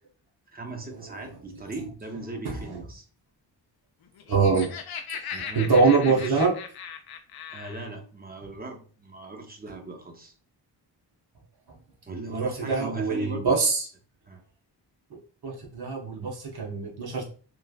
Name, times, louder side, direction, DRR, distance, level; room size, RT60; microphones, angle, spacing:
voice 1, 0.5-3.0 5.3-6.4 7.5-10.3 12.1-13.6 14.2-14.4, right 2 dB, 20° right, 3 dB, 0.6 m, -38 dB
Laughter, 4.1-7.9, left 7 dB, 60° left, 0.5 m, -38 dB
voice 2, 4.3-4.7 5.2-6.5 12.3-13.8 15.4-17.2, right 4 dB, 60° right, 0 dB, 1.0 m, -24 dB
3.1 x 2.3 x 2.3 m, 0.40 s
cardioid pair, 85°, 43 cm